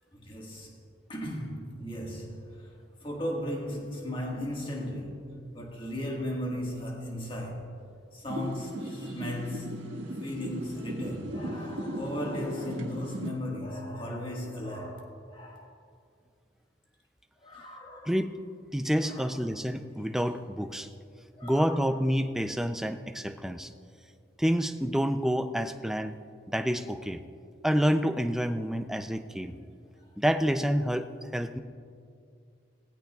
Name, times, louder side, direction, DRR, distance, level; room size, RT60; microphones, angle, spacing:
voice 1, 0.1-0.8 1.1-2.7 3.0-7.7 8.1-9.8 10.2-15.7 17.4-18.1 19.0-19.4 21.4-22.0, left 1 dB, 25° left, 1.7 m, -36 dB
sound 1, 8.3-13.3, right 1 dB, 80° right, 1.5 m, -37 dB
voice 2, 18.1-18.4 18.7-20.9 21.4-23.7 24.4-26.2 26.5-27.2 27.6-29.6 30.2-31.6, equal, ahead, 0.4 m, -28 dB
18.0 x 15.5 x 2.4 m
head